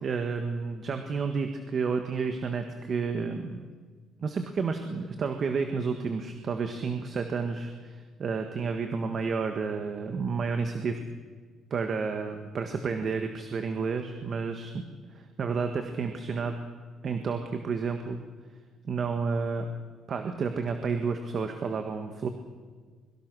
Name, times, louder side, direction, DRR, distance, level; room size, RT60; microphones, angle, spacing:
voice 1, 0.0-3.6 4.2-11.0 11.7-14.8 15.1-16.6 17.0-18.2 18.8-19.7 20.1-22.3, right 5 dB, 35° right, 6 dB, 1.6 m, -31 dB
24.5 x 23.0 x 6.3 m, 1.5 s
cardioid pair, 180°, 0 cm